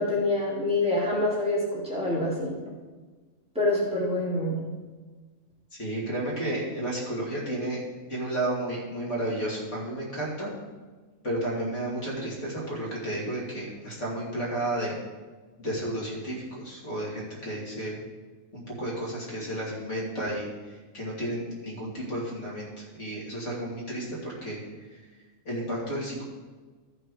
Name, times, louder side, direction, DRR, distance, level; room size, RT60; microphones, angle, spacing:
voice 1, 0.0-2.5 3.6-4.6, left 2 dB, 5° right, -8 dB, 3.4 m, -26 dB
voice 2, 5.8-7.8 8.1-10.5 11.2-15.0 15.6-18.0 18.5-24.6 25.4-26.2, right 1 dB, 60° left, -5 dB, 3.1 m, -32 dB
13.0 x 6.1 x 4.8 m, 1.3 s
omnidirectional pair, 1.4 m